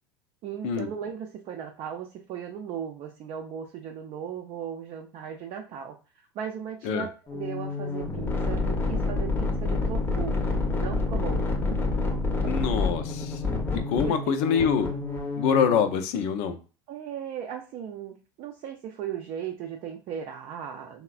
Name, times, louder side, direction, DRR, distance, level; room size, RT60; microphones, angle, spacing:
voice 1, 0.4-6.0 6.3-10.4 10.6-11.8 12.4-12.5 14.0-14.4 16.9-21.0, right 8 dB, 50° right, 2 dB, 0.5 m, -37 dB
sound 1, 7.3-15.9, left 3 dB, 15° left, 0.7 m, -28 dB
voice 2, 12.5-13.4 13.9-14.9 15.4-16.6, left 7 dB, 60° left, 9 dB, 0.5 m, -25 dB
3.2 x 2.1 x 2.4 m, 0.35 s
hypercardioid pair, 85°, 13 cm